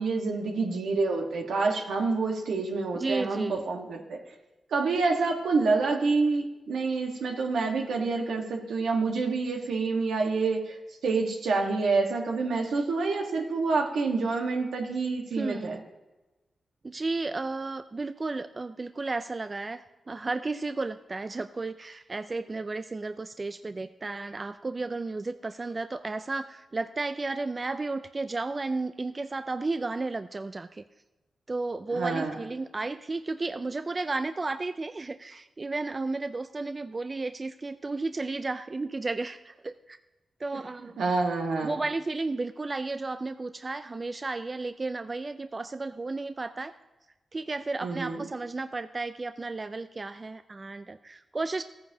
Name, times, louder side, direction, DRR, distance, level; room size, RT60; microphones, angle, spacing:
voice 1, 0.0-4.2 4.7-10.8 11.0-15.8 31.9-32.4 40.5-40.6 41.0-41.7 47.8-48.3, right 4 dB, 85° right, 2 dB, 1.4 m, -27 dB
voice 2, 2.9-3.6 15.3-15.8 16.8-30.8 31.5-40.0 40.4-40.9 41.6-46.7 47.3-51.6, right 3 dB, 35° right, 10 dB, 0.4 m, -33 dB
15.0 x 9.3 x 2.8 m, 1.1 s
cardioid pair, 55°, 0 cm